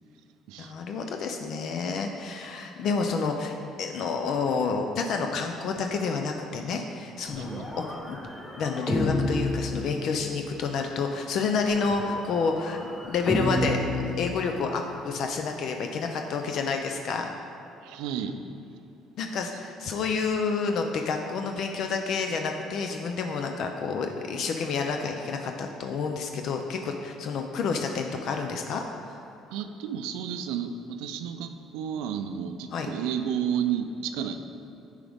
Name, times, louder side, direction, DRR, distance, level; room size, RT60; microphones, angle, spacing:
voice 1, 0.6-8.2 8.6-13.8 14.2-17.3 19.2-29.2 32.7-32.9, left 5 dB, 60° left, 4 dB, 0.5 m, -29 dB
sound 1, 7.3-10.5 11.6-14.9, left 1 dB, 10° left, 0.9 m, -31 dB
voice 2, 7.4-7.7 17.8-18.4 29.5-34.4, right 8 dB, 90° right, 8 dB, 0.4 m, -31 dB
9.0 x 4.8 x 3.5 m, 2.8 s
cardioid pair, 120°, 0 cm